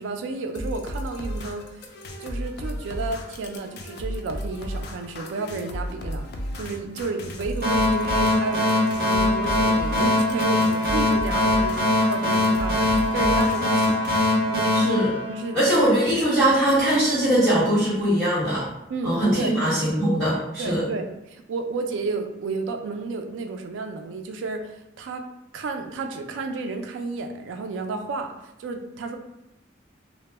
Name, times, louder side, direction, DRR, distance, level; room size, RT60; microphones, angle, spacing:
voice 1, 0.0-1.7 2.2-6.3 6.5-8.7 9.0-14.8 15.3-15.6 16.4-16.5 18.9-19.5 20.6-24.7 25.0-25.3 25.5-28.3 28.6-29.2, right 3 dB, 85° right, 5 dB, 0.3 m, -32 dB
sound 1, 0.5-14.3, equal, 55° left, 0.3 m, -34 dB
sound 2, 7.6-15.9, left 2 dB, 55° right, 0.7 m, -22 dB
voice 2, 14.7-15.1 15.5-18.7 19.0-20.8, right 1 dB, 5° left, -15 dB, 1.2 m, -21 dB
2.0 x 2.0 x 3.2 m, 0.88 s
head